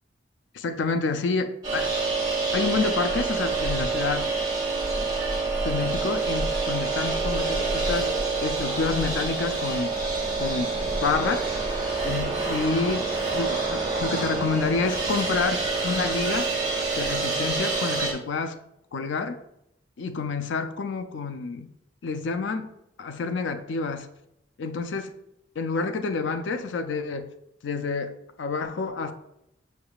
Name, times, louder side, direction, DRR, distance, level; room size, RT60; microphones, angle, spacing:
voice 1, 0.5-1.9 2.5-4.3 5.0-5.1 5.6-8.1 8.4-10.0 10.4-10.7 11.0-11.6 12.0-13.0 13.3-16.5 17.0-18.6 18.9-19.4 20.0-21.7 22.0-22.7 23.0-24.1 24.6-25.1 25.6-27.3 27.6-28.1 28.4-29.1, left 4 dB, 90° left, 8 dB, 0.4 m, -28 dB
sound 1, 1.6-18.1, right 3 dB, 20° right, 1.0 m, -27 dB
6.2 x 3.4 x 2.3 m, 0.80 s
head